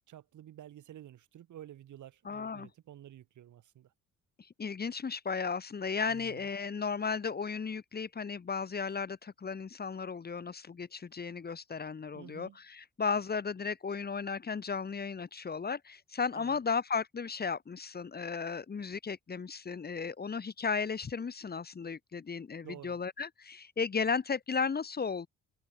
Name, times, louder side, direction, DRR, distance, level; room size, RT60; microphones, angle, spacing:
voice 1, 0.1-3.9 6.1-6.5 12.1-12.6 16.4-16.6 22.6-23.0, right 12 dB, 75° right, 7.0 m, -51 dB
voice 2, 2.2-2.7 4.6-25.3, left 5 dB, 30° left, 1.4 m, -35 dB
cardioid pair, 90°, 30 cm